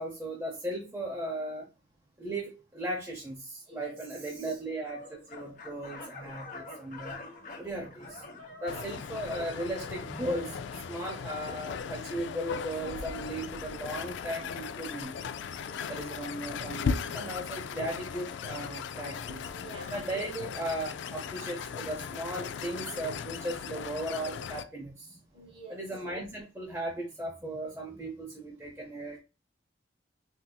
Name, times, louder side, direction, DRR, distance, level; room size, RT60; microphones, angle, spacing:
voice 1, 0.0-1.7 2.2-7.2 7.6-8.2 8.6-10.6 10.9-15.2 15.9-19.5 19.9-25.2 25.7-29.2, right 1 dB, 15° right, 0.6 m, -37 dB
sound 1, 4.8-10.9, left 2 dB, 45° left, 0.9 m, -47 dB
voice 2, 7.1-7.6 8.3-8.5 8.8-9.0 10.2-10.5 10.9-11.1 15.5-15.9 19.5-20.0 25.3-25.8 27.9-28.0, right 3 dB, 30° right, 0.9 m, -49 dB
sound 2, 8.7-24.6, left 6 dB, 75° left, 0.3 m, -38 dB
4.2 x 2.6 x 2.2 m
head